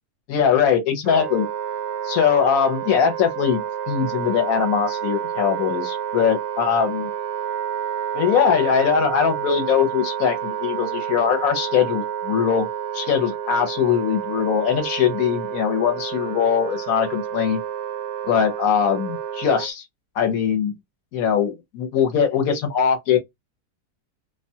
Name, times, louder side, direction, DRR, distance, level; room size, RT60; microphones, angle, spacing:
voice 1, 0.3-1.5 2.0-7.1 8.1-12.7 12.9-17.6 18.3-19.8 20.2-20.7 21.1-23.2, left 7 dB, 65° left, 1.0 m, -21 dB
Wind instrument woodwind instrument, 1.0-19.7, right 9 dB, 70° right, 0.6 m, -29 dB
2.7 x 2.2 x 2.6 m
omnidirectional pair, 1.7 m